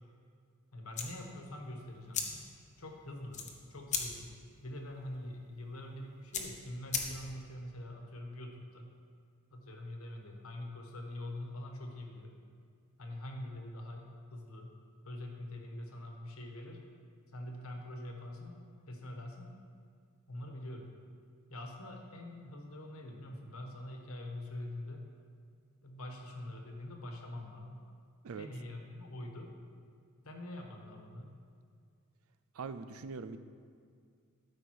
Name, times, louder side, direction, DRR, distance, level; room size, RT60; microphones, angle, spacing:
voice 1, 0.7-2.5 2.8-4.3 4.6-8.9 9.5-12.3 13.0-14.7 15.0-16.8 17.3-18.6 18.9-19.5 20.3-20.9 21.5-25.1 25.8-27.9 28.3-29.5 30.2-31.3, left 1 dB, 75° left, 2 dB, 1.3 m, -44 dB
sound 1, 0.9-7.5, left 6 dB, 35° left, 0.9 m, -41 dB
voice 2, 32.6-33.4, right 5 dB, 75° right, 12 dB, 0.5 m, -42 dB
12.5 x 5.2 x 4.7 m, 2.2 s
head